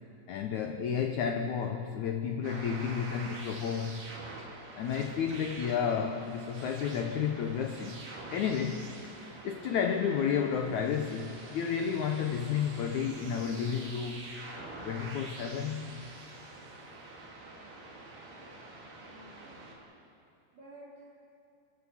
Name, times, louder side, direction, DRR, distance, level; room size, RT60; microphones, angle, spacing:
voice 1, 0.3-4.1 4.8-14.3 14.8-15.9, left 7 dB, 80° left, 5 dB, 1.7 m, -32 dB
sound 1, 2.4-19.8, right 2 dB, 55° right, 4.5 m, -46 dB
voice 2, 17.5-19.7 20.5-21.2, right 1 dB, 40° right, -5 dB, 4.7 m, -55 dB
27.5 x 16.0 x 7.2 m, 2.7 s
omnidirectional pair, 4.7 m